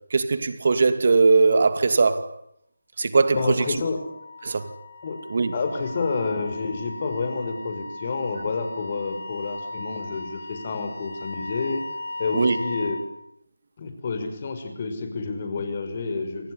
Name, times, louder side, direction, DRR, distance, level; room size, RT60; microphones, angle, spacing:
voice 1, 0.1-2.3 3.0-3.8 4.4-4.7 5.3-5.5 12.3-12.6, right 4 dB, 50° right, 2.6 m, -20 dB
voice 2, 3.3-4.0 5.0-5.2 5.5-11.8 12.2-13.0 13.8-16.5, left 4 dB, 35° left, 6.0 m, -29 dB
Wind instrument woodwind instrument, 3.6-13.1, left 2 dB, 65° left, 3.7 m, -37 dB
28.0 x 18.5 x 10.0 m
figure-of-eight pair, 160°, 0 cm